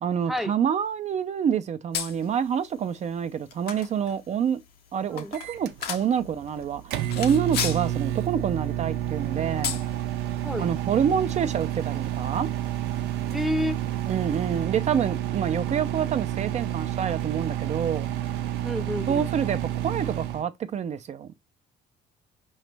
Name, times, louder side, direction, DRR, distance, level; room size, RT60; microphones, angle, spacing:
voice 1, 0.0-4.6 4.9-9.8 10.6-12.6 14.1-18.1 19.1-21.3, right 8 dB, 40° right, 0.5 m, -27 dB
sound 1, 1.9-14.6, left 8 dB, 70° left, 0.9 m, -39 dB
Microwave oven, 5.3-20.4, right 12 dB, 80° right, 0.6 m, -30 dB
voice 2, 13.3-13.8 18.6-19.3, left 1 dB, ahead, 0.6 m, -29 dB
4.9 x 3.1 x 3.3 m
cardioid pair, 110°, 17 cm